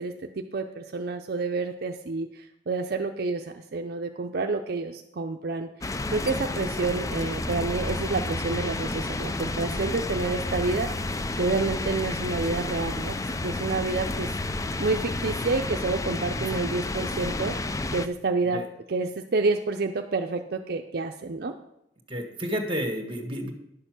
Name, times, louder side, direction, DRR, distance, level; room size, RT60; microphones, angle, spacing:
voice 1, 0.0-5.7 6.1-13.2 13.4-14.3 14.8-17.6 17.9-21.5, right 3 dB, 60° right, 4 dB, 0.6 m, -29 dB
sound 1, 5.8-18.1, left 2 dB, 20° left, 0.4 m, -31 dB
voice 2, 22.1-23.5, equal, 30° right, 5 dB, 1.5 m, -31 dB
11.0 x 6.8 x 6.0 m, 0.81 s
head